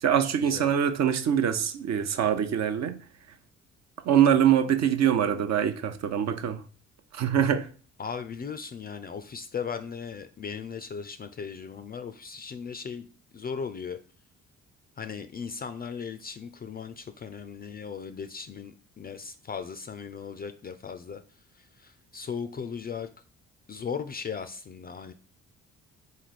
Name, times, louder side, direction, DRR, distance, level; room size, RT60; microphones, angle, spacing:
voice 1, 0.0-3.0 4.1-6.6 7.1-7.7, right 9 dB, 55° right, 0.7 m, -24 dB
voice 2, 8.0-13.1 13.3-14.0 15.0-23.1 23.7-25.1, left 6 dB, 30° left, 0.4 m, -37 dB
3.9 x 3.2 x 4.0 m
supercardioid pair, 65°, 32 cm